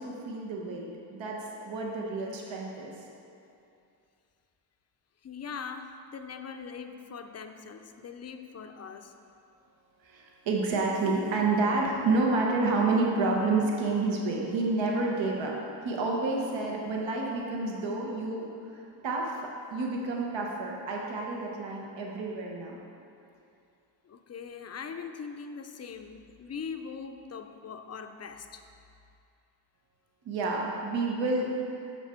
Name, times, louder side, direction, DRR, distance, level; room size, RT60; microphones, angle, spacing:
voice 1, 0.0-2.9 10.0-15.5 15.8-18.4 19.0-19.4 19.7-22.8 30.2-31.5, right 3 dB, 75° right, -1 dB, 1.1 m, -29 dB
voice 2, 5.2-9.1 19.7-19.8 24.0-28.6, left 6 dB, 35° left, 7 dB, 0.5 m, -41 dB
6.7 x 6.3 x 4.4 m, 2.6 s
cardioid pair, 75°, 46 cm